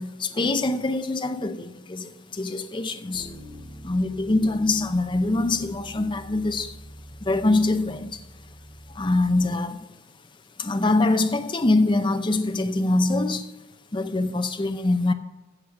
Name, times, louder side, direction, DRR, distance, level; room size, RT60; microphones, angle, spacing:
voice 1, 0.0-3.3 3.8-6.8 7.2-8.3 8.9-9.8 10.6-13.5 13.9-15.1, left 2 dB, 20° left, 0.6 m, -24 dB
Bass guitar, 3.1-9.4, equal, 10° right, 2.6 m, -45 dB
14.5 x 7.5 x 4.8 m
head